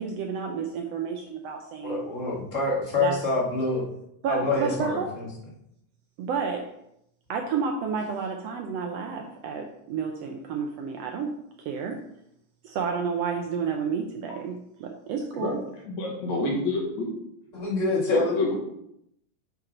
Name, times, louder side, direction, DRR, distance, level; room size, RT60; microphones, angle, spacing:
voice 1, 0.0-2.0 3.0-3.2 4.2-5.1 6.2-6.8 7.3-12.0 12.6-15.6, right 6 dB, 75° right, 3 dB, 1.6 m, -31 dB
voice 2, 1.8-3.9 4.3-5.3 17.5-18.4, left 2 dB, 30° left, -3 dB, 1.6 m, -26 dB
voice 3, 15.9-17.1 18.1-18.5, left 2 dB, 70° left, -3 dB, 3.1 m, -27 dB
9.0 x 4.6 x 3.8 m, 0.77 s
omnidirectional pair, 3.4 m